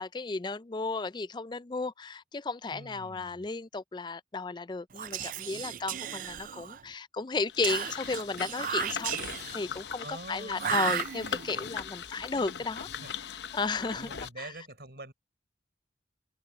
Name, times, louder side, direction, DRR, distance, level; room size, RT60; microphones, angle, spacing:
voice 1, 0.0-9.1 9.5-12.9 13.5-14.1 14.4-14.5, left 3 dB, 25° left, 0.4 m, -34 dB
voice 2, 2.7-3.5 10.0-10.7 13.0-13.1 13.9-15.1, right 2 dB, 65° right, 6.1 m, -45 dB
Whispering, 4.9-6.9 7.6-9.7 10.6-11.6, right 9 dB, 45° right, 0.4 m, -34 dB
sound 1, 7.5-14.3, left 7 dB, 75° left, 0.7 m, -40 dB
head